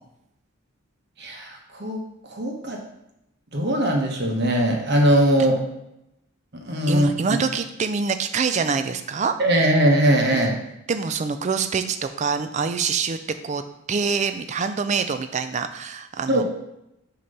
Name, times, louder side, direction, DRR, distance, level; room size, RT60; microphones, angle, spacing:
voice 1, 1.2-2.0 2.3-2.8 3.5-5.6 6.6-7.1 9.4-10.5 16.3-16.4, right 1 dB, 50° right, 2 dB, 1.0 m, -20 dB
voice 2, 6.9-9.6 10.3-10.5 10.9-13.2 13.4-13.6 13.9-16.4, right 5 dB, 35° right, 9 dB, 0.3 m, -25 dB
6.4 x 3.0 x 5.3 m, 0.86 s
head